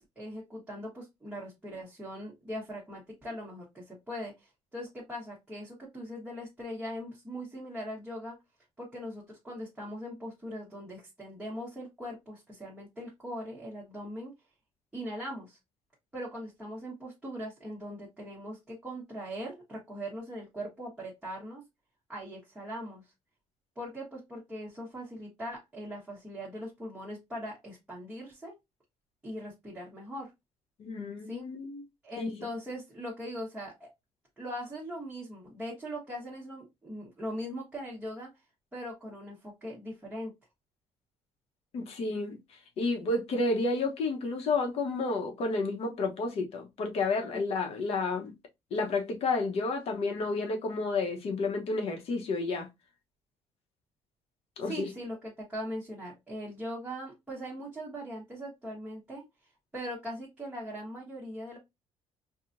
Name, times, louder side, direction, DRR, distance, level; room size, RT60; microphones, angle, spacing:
voice 1, 0.0-8.4 8.8-14.3 14.9-15.6 16.1-21.6 22.1-23.1 23.7-28.5 29.2-30.3 31.3-31.4 32.0-33.9 34.4-38.3 38.7-40.3 54.6-59.2 59.7-61.6, equal, 10° right, 1.3 m, -40 dB
voice 2, 30.8-31.8 32.2-32.4 41.7-42.4 42.8-48.3 48.7-52.7 54.6-54.9, left 3 dB, 60° left, 1.0 m, -31 dB
4.6 x 2.4 x 2.6 m
cardioid pair, 145°, 11 cm